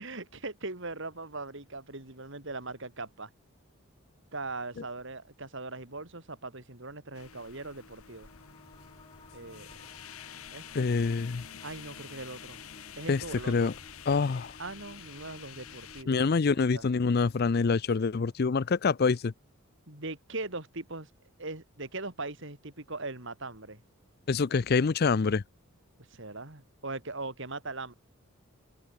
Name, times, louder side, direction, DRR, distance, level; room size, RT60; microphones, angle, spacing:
voice 1, 0.0-3.3 4.3-8.3 9.3-9.7 10.0-10.1 10.5-10.9 11.6-12.6 13.0-13.7 14.6-16.2 16.5-16.8 19.9-21.1 21.4-23.8 26.1-27.9, right 3 dB, 60° right, 3.5 m, -40 dB
sound 1, 7.1-16.0, left 8 dB, 85° left, 1.6 m, -48 dB
sound 2, 8.0-18.9, left 1 dB, 25° left, 6.7 m, -58 dB
voice 2, 10.7-11.4 13.1-13.7 14.1-14.5 16.1-19.3 24.3-25.4, left 4 dB, 45° left, 0.5 m, -26 dB
head